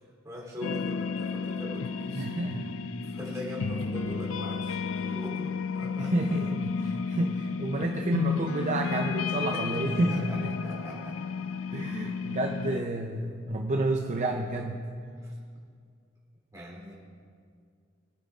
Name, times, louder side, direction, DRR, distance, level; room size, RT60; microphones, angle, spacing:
voice 1, 0.2-2.3 3.0-6.6 9.5-9.6 9.9-11.2 15.2-15.3 16.5-16.9, left 1 dB, 15° right, -4 dB, 3.3 m, -41 dB
sound 1, 0.6-12.8, left 5 dB, 85° left, 0.4 m, -32 dB
voice 2, 2.1-2.8 6.0-10.5 11.7-14.9, right 2 dB, 40° right, 2 dB, 0.6 m, -30 dB
23.5 x 9.2 x 2.5 m, 2.2 s
head